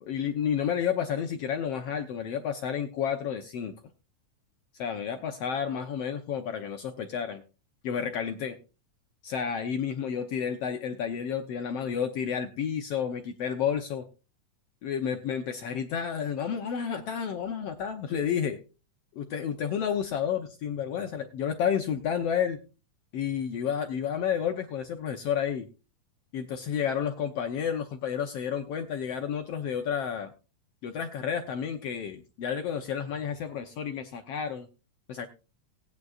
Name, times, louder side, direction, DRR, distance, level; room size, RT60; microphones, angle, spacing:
voice 1, 0.0-3.7 4.8-7.4 7.8-8.6 9.2-14.1 14.8-18.6 19.1-22.6 23.1-25.7 26.3-30.3 30.8-34.7 35.1-35.3, left 8 dB, 75° left, 5 dB, 1.4 m, -31 dB
18.5 x 9.4 x 2.4 m, 0.32 s
omnidirectional pair, 3.6 m